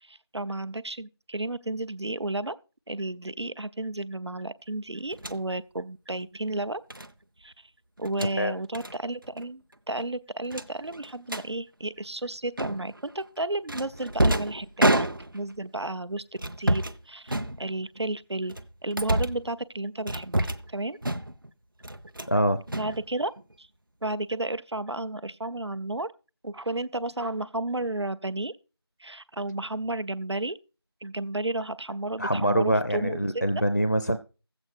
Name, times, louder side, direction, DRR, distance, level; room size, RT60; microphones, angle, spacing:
voice 1, 0.0-2.6 2.9-6.8 7.4-7.7 8.0-15.1 15.3-16.2 16.6-18.5 18.8-21.0 22.8-23.3 23.6-23.7 24.0-26.1 26.4-28.5 29.0-30.6 31.0-33.4, right 2 dB, 90° right, 0.7 m, -32 dB
sound 1, 5.1-5.4 6.9-7.1 8.0-8.3 8.7-8.9 9.2-9.4 9.7-9.8 10.5-11.5 12.6-13.0 13.7-15.6 16.4-17.0 17.3-18.0 18.5-19.5 20.1-20.7 21.0-21.5 21.8-22.4 22.7-23.5, right 1 dB, 55° right, 0.7 m, -28 dB
voice 2, 22.3-22.6 32.2-34.2, right 1 dB, 40° left, 0.5 m, -24 dB
14.0 x 7.9 x 4.3 m
figure-of-eight pair, 175°, 14 cm